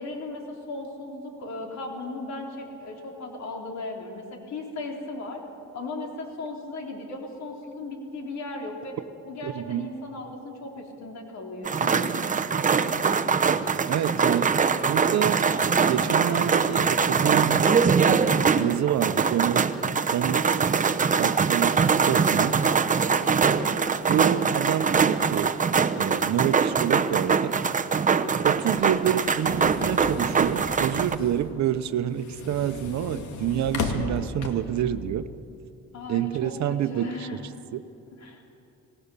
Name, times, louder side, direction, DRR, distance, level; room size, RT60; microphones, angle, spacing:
voice 1, 0.0-5.4 5.7-9.0 9.3-12.3 35.9-37.5 38.2-38.4, left 2 dB, 65° left, 1 dB, 3.5 m, -37 dB
voice 2, 9.4-9.9 13.9-14.6 14.9-15.5 15.9-17.7 18.0-19.7 20.1-20.6 21.2-21.8 22.1-22.6 24.1-25.6 26.0-27.6 28.4-35.3 36.1-37.4 37.7-37.8, right 11 dB, 70° right, 12 dB, 0.9 m, -28 dB
sound 1, 11.6-31.1, right 5 dB, 25° right, 0.8 m, -23 dB
sound 2, 28.3-34.9, left 4 dB, 85° left, 2.2 m, -36 dB
26.0 x 18.5 x 6.9 m, 2.6 s
cardioid pair, 115°, 29 cm